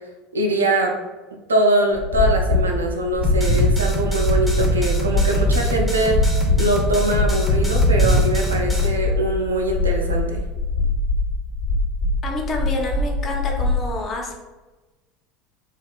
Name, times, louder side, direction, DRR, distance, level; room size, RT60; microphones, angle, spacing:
voice 1, 0.3-0.9 1.5-6.3 6.6-10.4, right 1 dB, 85° right, 1 dB, 0.4 m, -22 dB
sound 1, 1.9-13.8, left 2 dB, 70° left, 1.0 m, -22 dB
sound 2, 3.2-8.9, right 2 dB, ahead, 0.6 m, -24 dB
voice 2, 12.2-14.3, left 2 dB, 35° left, 0 dB, 0.6 m, -28 dB
2.7 x 2.3 x 2.3 m, 1.1 s
figure-of-eight pair, 75°, 0 cm